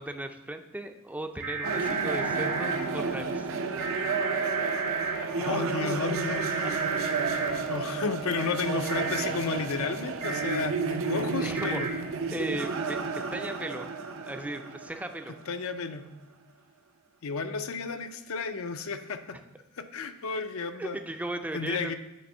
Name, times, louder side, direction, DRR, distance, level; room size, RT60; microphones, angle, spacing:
voice 1, 0.0-3.5 5.0-5.9 6.6-6.7 11.4-12.0 12.3-13.9 14.2-15.3 20.8-21.9, right 1 dB, 5° right, 6 dB, 0.4 m, -37 dB
sound 1, 1.4-2.8 3.8-5.1 6.1-7.5 8.9-9.2 10.2-10.6 11.5-11.9, right 5 dB, 80° right, 1.8 m, -32 dB
sound 2, 1.6-15.8, right 4 dB, 65° right, 0.6 m, -32 dB
voice 2, 5.3-6.9 7.7-11.9 15.3-16.1 17.2-19.4 19.7-21.0 21.5-21.9, left 4 dB, 70° left, 9 dB, 0.5 m, -32 dB
8.6 x 3.5 x 5.4 m, 1.0 s
head